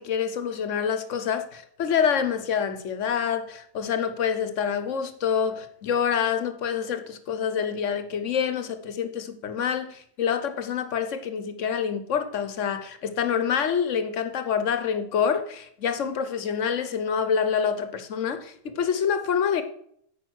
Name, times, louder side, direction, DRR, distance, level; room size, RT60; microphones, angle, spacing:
voice 1, 0.0-19.6, left 7 dB, 70° left, 1.2 m, -27 dB
9.1 x 5.1 x 6.2 m
omnidirectional pair, 1.4 m